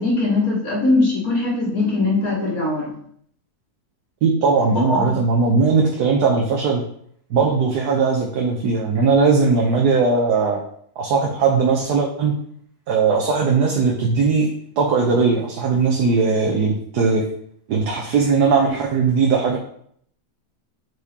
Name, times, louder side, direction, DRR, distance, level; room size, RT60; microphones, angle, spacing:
voice 1, 0.0-2.9 4.8-5.2, left 2 dB, 60° left, -4 dB, 2.0 m, -21 dB
voice 2, 4.2-6.8 7.3-10.6 11.0-12.3 12.9-14.5 14.8-17.2 17.7-19.6, right 4 dB, 80° right, 0 dB, 1.4 m, -19 dB
8.2 x 4.9 x 2.9 m, 0.65 s
omnidirectional pair, 1.7 m